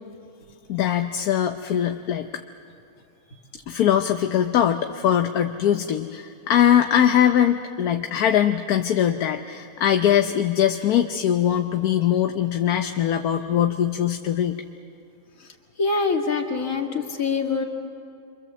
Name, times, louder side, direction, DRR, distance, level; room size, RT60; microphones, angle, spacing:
voice 1, 0.7-2.3 3.3-14.6, left 10 dB, 70° left, 6 dB, 1.3 m, -21 dB
voice 2, 15.8-17.6, left 4 dB, 55° left, 2 dB, 2.4 m, -24 dB
27.5 x 24.5 x 7.5 m, 2.4 s
omnidirectional pair, 1.7 m